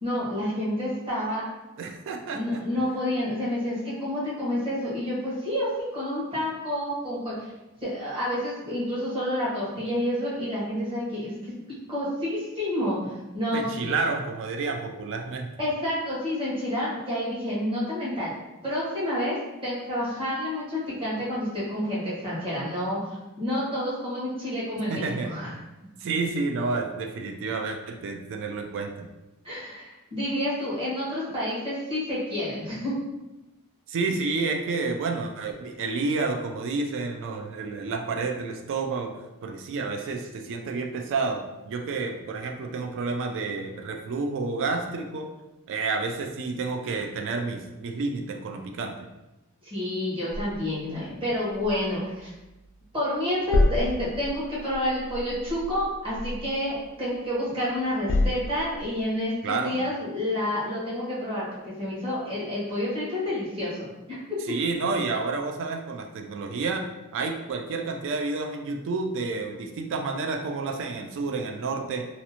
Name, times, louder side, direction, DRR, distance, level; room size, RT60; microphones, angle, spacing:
voice 1, 0.0-1.5 2.3-7.5 7.8-11.5 11.9-14.0 15.6-18.3 18.6-23.1 23.4-25.5 29.4-33.0 49.6-52.3 52.9-64.2, left 1 dB, 25° right, -8 dB, 1.0 m, -29 dB
voice 2, 1.8-2.6 13.5-15.5 24.9-25.3 26.0-29.1 33.9-39.1 39.4-45.3 45.7-49.1 59.4-59.8 64.5-66.8 67.1-72.1, right 3 dB, 55° right, 4 dB, 0.3 m, -30 dB
sound 1, 50.3-52.9 53.1-57.4 57.8-59.0, left 2 dB, 60° left, 0.3 m, -30 dB
2.5 x 2.0 x 2.8 m, 1.0 s
head